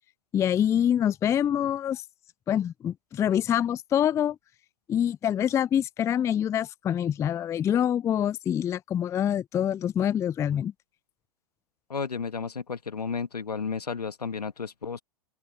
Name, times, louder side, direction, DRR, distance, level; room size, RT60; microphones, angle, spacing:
voice 1, 0.3-2.0 2.5-4.4 4.9-10.7, left 9 dB, 15° left, 0.4 m, -25 dB
voice 2, 11.9-15.0, left 5 dB, 85° left, 1.8 m, -32 dB
open air
figure-of-eight pair, 105°, 20 cm